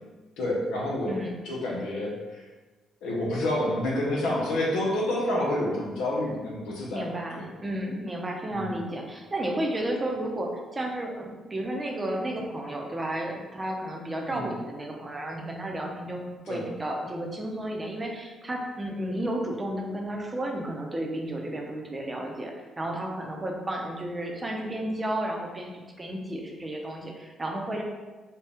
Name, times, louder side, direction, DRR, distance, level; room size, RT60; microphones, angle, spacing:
voice 1, 0.4-1.2 1.4-2.4 3.0-7.5 8.5-8.8 14.3-14.5 16.5-16.6, left 1 dB, 90° left, -3 dB, 0.9 m, -28 dB
voice 2, 1.0-1.3 6.9-27.8, right 1 dB, 25° right, 0 dB, 0.7 m, -32 dB
4.4 x 2.4 x 3.4 m, 1.3 s
cardioid pair, 90°, 0 cm